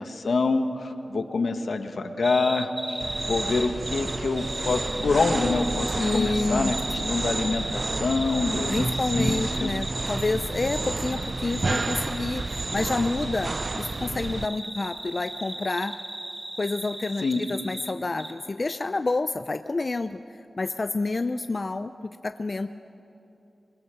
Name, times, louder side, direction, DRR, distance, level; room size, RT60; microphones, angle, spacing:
voice 1, 0.0-8.7 9.1-9.7 17.2-17.4, left 3 dB, 80° left, 7 dB, 1.4 m, -26 dB
sound 1, 2.0-10.4, right 1 dB, 70° right, 2.8 m, -41 dB
sound 2, 2.2-17.9 18.2-18.3, right 1 dB, 25° right, 1.7 m, -36 dB
sound 3, 3.0-14.4, right 3 dB, 50° right, 0.6 m, -31 dB
voice 2, 6.0-6.7 7.0-7.2 8.7-16.0 16.6-20.2 20.6-21.9 22.2-22.7, left 3 dB, 45° left, 9 dB, 0.6 m, -28 dB
27.0 x 20.5 x 7.0 m, 2.8 s
wide cardioid pair, 80°, 0 cm